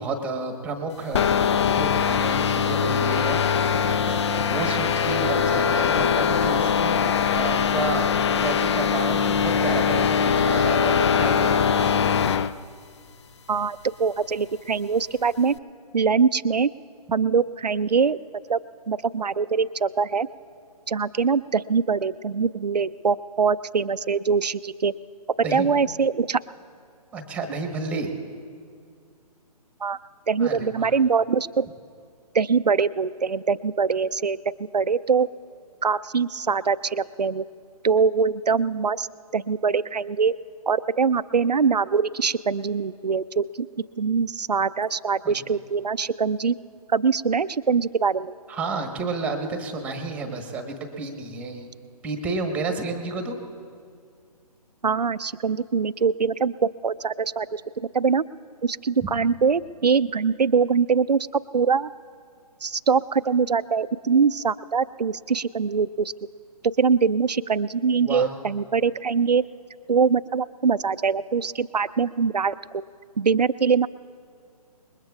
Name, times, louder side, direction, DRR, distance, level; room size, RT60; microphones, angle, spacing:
voice 1, 0.0-1.3 1.7-11.9 25.4-25.8 27.1-28.1 30.4-30.9 45.2-45.4 48.5-51.7 52.0-53.4 59.0-59.1 68.0-68.3, right 3 dB, 5° right, 4 dB, 1.2 m, -31 dB
sound 1, 1.1-12.5, left 7 dB, 45° left, 0.5 m, -22 dB
voice 2, 13.5-15.5 15.9-16.7 17.1-18.2 18.5-18.6 18.9-20.3 20.9-24.9 25.5-26.4 29.8-30.0 30.3-31.7 32.3-34.4 34.7-35.3 35.8-37.4 37.8-39.1 39.3-40.3 40.7-43.7 44.0-46.6 46.9-48.3 54.8-57.6 57.9-58.2 58.6-61.9 62.6-66.1 66.8-69.4 69.9-72.8 73.2-73.9, right 5 dB, 90° right, 12 dB, 0.5 m, -23 dB
27.0 x 21.0 x 2.4 m, 2.2 s
figure-of-eight pair, 140°, 20 cm